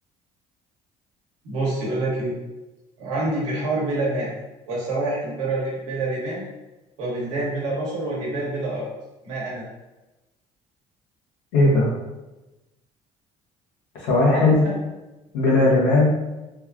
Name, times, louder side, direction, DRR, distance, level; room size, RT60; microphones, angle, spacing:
voice 1, 1.4-2.3 3.0-4.3 4.7-6.4 7.0-8.9 9.2-9.6 14.3-14.7, right 2 dB, 90° right, -5 dB, 0.9 m, -27 dB
voice 2, 11.5-11.9 13.9-14.7 15.3-16.1, left 2 dB, 85° left, -4 dB, 0.9 m, -17 dB
3.1 x 2.2 x 2.4 m, 1.0 s
hypercardioid pair, 65°, 17 cm